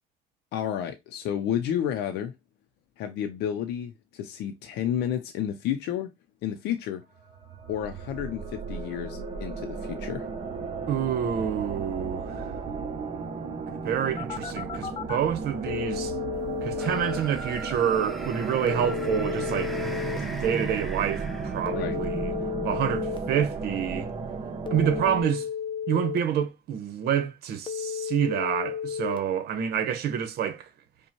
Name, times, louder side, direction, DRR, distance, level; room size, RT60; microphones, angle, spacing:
voice 1, 0.5-2.3 3.0-6.1 6.4-7.0 7.7-10.3 21.7-22.0, left 10 dB, 85° left, 0.6 m, -31 dB
sound 1, 7.2-25.2, right 4 dB, 35° right, 1.0 m, -34 dB
voice 2, 10.9-12.5 13.7-16.1 16.6-19.7 20.2-22.3 22.6-24.1 24.7-25.5 25.9-30.7, right 9 dB, 70° right, 1.0 m, -28 dB
Telephone, 14.2-15.2 15.7-17.2 18.7-20.2 21.7-23.2 24.7-26.2 27.7-29.2, left 8 dB, 30° left, 0.6 m, -33 dB
sound 2, 16.7-22.0, equal, ahead, 0.8 m, -41 dB
5.4 x 2.2 x 3.0 m
cardioid pair, 110°, 17 cm